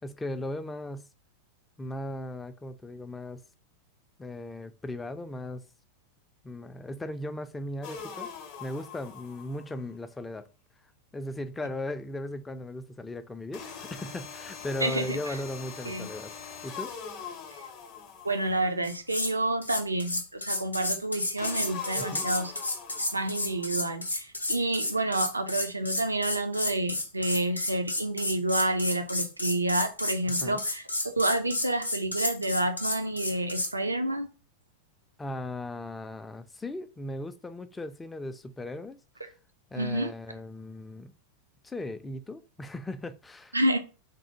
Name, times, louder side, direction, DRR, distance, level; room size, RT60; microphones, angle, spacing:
voice 1, 0.0-1.1 1.8-3.4 4.2-5.6 6.4-8.3 8.6-10.5 11.1-16.3 16.6-17.3 22.0-22.3 30.3-30.6 35.2-39.0 39.7-41.1 41.6-43.6, left 1 dB, 10° left, 0.3 m, -37 dB
sound 1, 7.8-9.8 13.5-18.8 21.4-23.8, left 6 dB, 45° left, 0.6 m, -42 dB
voice 2, 14.8-15.4 15.8-16.1 18.2-22.5 23.1-34.3 39.7-40.1 43.5-43.8, right 1 dB, 80° right, 0.4 m, -29 dB
sound 2, 18.8-19.3 19.6-33.7, left 1 dB, 85° left, 0.4 m, -32 dB
3.2 x 2.1 x 2.9 m
figure-of-eight pair, 90°, 0 cm